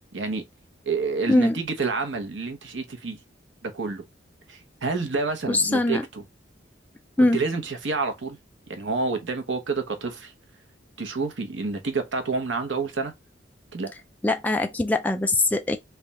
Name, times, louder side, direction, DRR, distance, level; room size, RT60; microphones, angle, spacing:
voice 1, 0.1-0.4 0.9-3.2 3.6-4.0 4.5-6.2 7.2-8.4 8.7-10.3 11.0-13.1 13.7-13.9, right 4 dB, 80° right, 0.9 m, -28 dB
voice 2, 1.3-1.6 5.5-6.0 7.2-7.4 14.2-15.8, left 2 dB, 10° left, 0.3 m, -22 dB
3.3 x 2.3 x 4.0 m
head